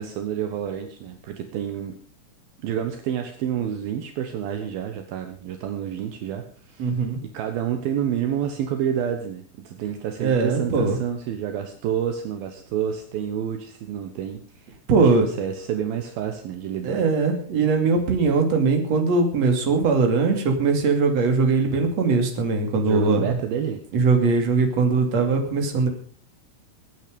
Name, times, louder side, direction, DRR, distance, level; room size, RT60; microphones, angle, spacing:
voice 1, 0.0-2.0 2.6-7.0 7.2-17.0 22.8-23.8, right 9 dB, 70° right, 6 dB, 2.2 m, -29 dB
voice 2, 6.8-7.2 10.2-11.0 14.9-15.3 16.8-23.4 23.9-25.9, right 4 dB, 40° right, 4 dB, 3.0 m, -20 dB
22.5 x 9.3 x 5.2 m, 0.43 s
omnidirectional pair, 5.9 m